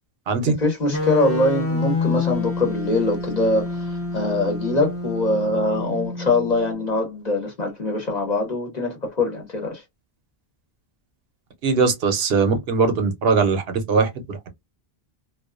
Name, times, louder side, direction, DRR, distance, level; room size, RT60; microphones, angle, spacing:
voice 1, 0.4-9.8, left 2 dB, 45° left, 0.9 m, -23 dB
sound 1, 0.9-7.0, left 3 dB, 25° left, 0.3 m, -28 dB
voice 2, 11.6-14.5, right 4 dB, 75° right, 0.9 m, -20 dB
2.3 x 2.3 x 2.3 m
omnidirectional pair, 1.0 m